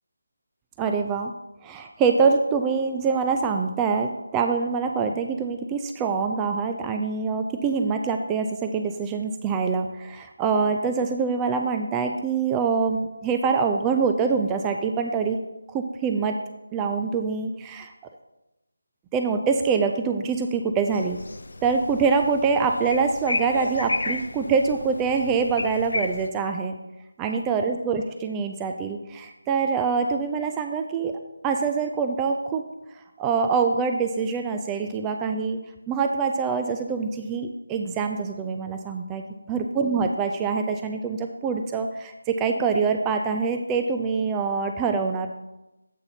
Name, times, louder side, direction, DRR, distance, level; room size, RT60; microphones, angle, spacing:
voice 1, 0.8-1.3 1.6-15.4 15.7-16.4 16.7-17.9 19.1-21.2 21.6-26.8 27.2-32.6 33.2-35.6 35.9-39.2 39.5-45.3, right 5 dB, 10° right, 5 dB, 0.4 m, -25 dB
sound 1, 20.9-26.3, left 2 dB, 65° left, 0.6 m, -33 dB
8.2 x 3.9 x 5.7 m, 0.95 s
figure-of-eight pair, 165°, 0 cm